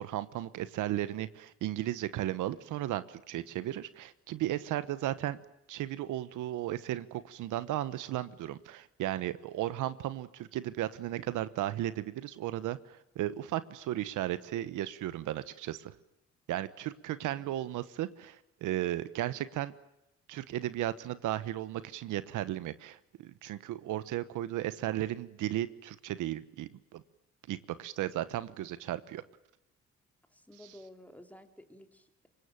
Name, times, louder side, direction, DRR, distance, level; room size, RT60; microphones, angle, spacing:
voice 1, 0.0-5.4 5.7-15.9 16.5-19.7 20.3-27.0 27.5-29.2 30.6-30.8, right 13 dB, 90° right, 14 dB, 1.2 m, -35 dB
voice 2, 17.2-17.6 30.3-32.3, left 1 dB, 5° left, 6 dB, 3.4 m, -53 dB
24.5 x 21.5 x 9.1 m, 0.86 s
cardioid pair, 90°, 30 cm